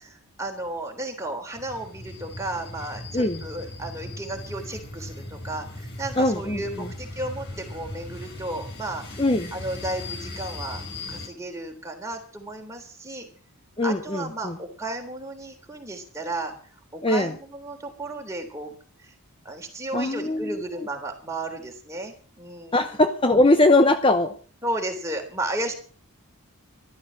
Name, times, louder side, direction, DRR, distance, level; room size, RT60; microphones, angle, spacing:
voice 1, 0.0-9.2 9.5-10.8 11.1-13.3 13.8-16.5 16.9-18.7 19.0-19.1 19.4-23.0 24.6-25.7, right 2 dB, 15° right, 2 dB, 3.4 m, -33 dB
sound 1, 1.6-11.3, left 2 dB, 50° left, 4.7 m, -38 dB
voice 2, 6.2-6.9 9.2-9.5 13.8-14.6 17.0-17.3 19.9-20.6 22.7-24.3, left 2 dB, 25° left, 8 dB, 0.8 m, -21 dB
13.5 x 13.0 x 6.3 m, 0.42 s
head